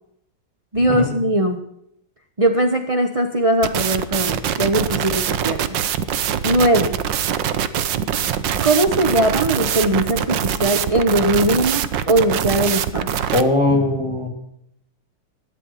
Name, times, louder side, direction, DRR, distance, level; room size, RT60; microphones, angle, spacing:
voice 1, 0.7-1.6 2.4-5.8 6.4-6.9 8.6-13.1, right 1 dB, 30° right, 5 dB, 0.6 m, -19 dB
sound 1, 3.6-13.4, right 9 dB, 65° right, 1.5 m, -23 dB
voice 2, 13.3-14.3, left 2 dB, 15° left, 5 dB, 3.5 m, -19 dB
17.0 x 11.5 x 5.8 m, 0.73 s
omnidirectional pair, 2.3 m